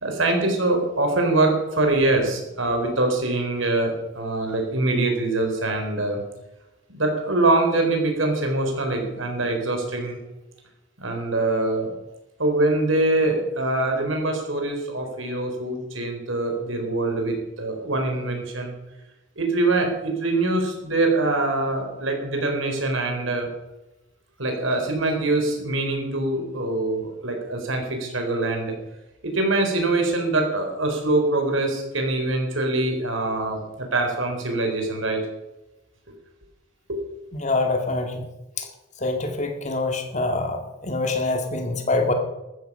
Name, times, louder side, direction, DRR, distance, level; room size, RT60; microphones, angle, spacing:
voice 1, 0.0-6.2 6.9-10.2 11.0-11.9 12.4-18.7 19.4-23.5 24.4-28.7 29.2-35.2 36.9-37.0, right 2 dB, 80° right, 3 dB, 4.2 m, -24 dB
voice 2, 37.3-38.2 38.6-38.7 39.0-42.1, left 2 dB, 35° left, 5 dB, 2.1 m, -25 dB
14.0 x 13.5 x 5.6 m, 0.98 s
head